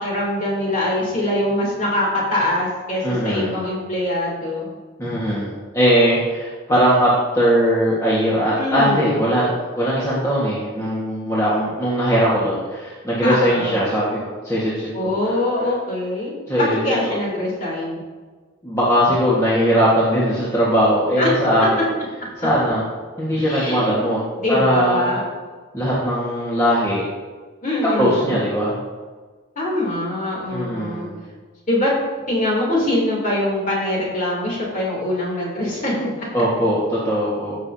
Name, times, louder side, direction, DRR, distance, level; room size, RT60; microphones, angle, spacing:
voice 1, 0.0-4.8 8.6-9.1 13.2-13.7 14.9-18.0 21.2-21.3 21.6-21.7 23.4-23.9 24.4-25.2 27.6-28.4 29.5-31.1 31.7-31.9 32.3-36.3, left 1 dB, 40° left, -4 dB, 3.0 m, -23 dB
voice 2, 3.0-3.6 5.0-15.1 16.5-16.8 17.1-17.2 18.6-21.8 22.4-22.8 23.2-24.2 24.5-25.1 25.7-27.0 27.9-28.8 30.5-31.1 36.3-37.6, equal, 15° left, -8 dB, 1.5 m, -20 dB
15.5 x 6.3 x 2.8 m, 1.4 s
head